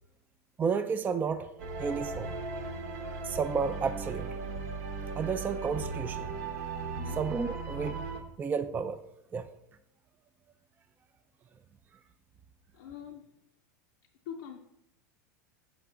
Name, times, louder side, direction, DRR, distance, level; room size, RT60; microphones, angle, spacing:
voice 1, 0.6-1.5 1.8-2.3 3.2-4.3 5.2-6.3 7.2-8.1 8.4-9.0 9.3-9.5, right 6 dB, 20° right, 9 dB, 0.3 m, -31 dB
sound 1, 1.6-8.2, right 4 dB, 70° right, 0.9 m, -37 dB
voice 2, 6.9-7.3 12.7-13.3 14.3-14.6, left 8 dB, 70° left, 2 dB, 0.5 m, -43 dB
6.0 x 5.8 x 3.7 m, 0.82 s
hypercardioid pair, 100°, 9 cm